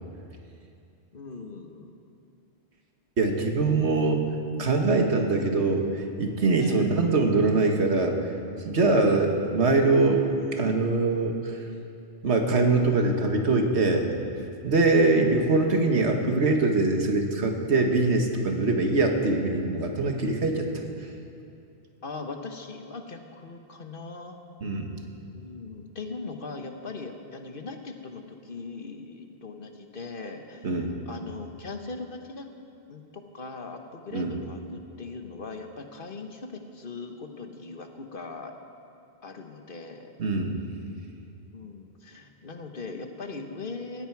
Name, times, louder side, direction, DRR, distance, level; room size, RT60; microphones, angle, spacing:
voice 1, 1.1-2.0 6.6-6.9 15.0-15.3 22.0-24.4 25.3-32.4 32.9-38.5 39.2-40.1 41.5-44.1, left 3 dB, 55° left, 5 dB, 1.3 m, -40 dB
voice 2, 3.2-4.2 4.6-8.2 8.6-10.3 10.5-11.6 12.2-14.1 14.6-20.7 21.0-21.1 24.6-25.0 30.6-31.0 34.1-34.3 40.2-40.6, right 3 dB, 80° right, 3 dB, 1.7 m, -23 dB
17.5 x 15.5 x 4.7 m, 2.5 s
omnidirectional pair, 1.1 m